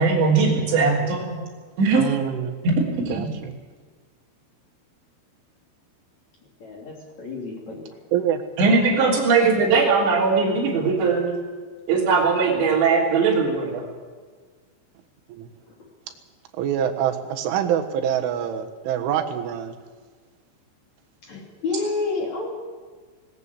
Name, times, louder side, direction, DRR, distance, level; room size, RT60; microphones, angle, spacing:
voice 1, 0.0-1.4 1.8-2.1 2.6-3.3 8.6-11.4 11.9-13.8, right 4 dB, 70° right, -5 dB, 5.5 m, -20 dB
voice 2, 1.9-2.6 3.1-3.5 8.1-8.4 15.3-15.5 16.6-19.8, right 9 dB, 90° right, 5 dB, 4.0 m, -25 dB
voice 3, 6.6-7.9 8.9-9.1 21.2-22.5, left 3 dB, 40° left, -1 dB, 3.8 m, -29 dB
19.0 x 18.5 x 8.3 m, 1.5 s
omnidirectional pair, 5.4 m